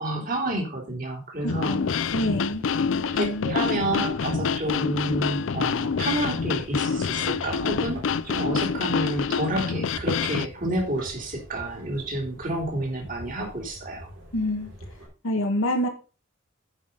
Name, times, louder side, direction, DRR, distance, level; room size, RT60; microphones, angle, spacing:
voice 1, 0.0-2.0 3.0-14.1, right 1 dB, 40° right, 1 dB, 3.1 m, -30 dB
voice 2, 1.4-2.6 3.1-3.5 14.3-14.7 15.2-15.9, left 1 dB, 85° left, 3 dB, 1.5 m, -27 dB
sound 1, 1.4-15.1, right 1 dB, 65° right, 3.7 m, -44 dB
sound 2, 1.5-10.5, left 6 dB, 70° left, 0.4 m, -27 dB
9.1 x 5.4 x 5.3 m, 0.35 s
head